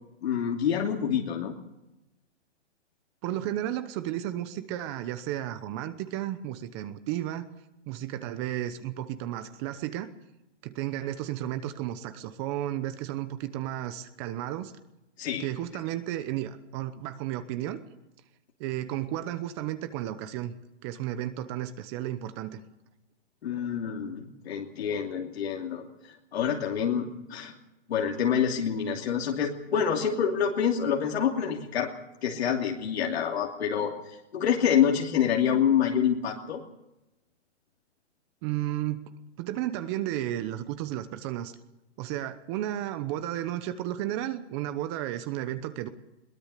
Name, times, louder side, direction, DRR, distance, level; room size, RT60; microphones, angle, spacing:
voice 1, 0.2-1.5 15.2-15.5 23.4-25.8 26.3-27.5 27.9-31.9 32.2-36.6, left 8 dB, 60° left, 0 dB, 2.9 m, -27 dB
voice 2, 3.2-7.5 7.9-10.1 10.6-14.7 15.4-17.8 18.6-20.5 20.8-22.6 38.4-39.0 39.4-41.5 42.0-45.9, right 13 dB, 25° right, 11 dB, 0.9 m, -33 dB
22.0 x 18.5 x 6.7 m, 0.93 s
hypercardioid pair, 155°, 36 cm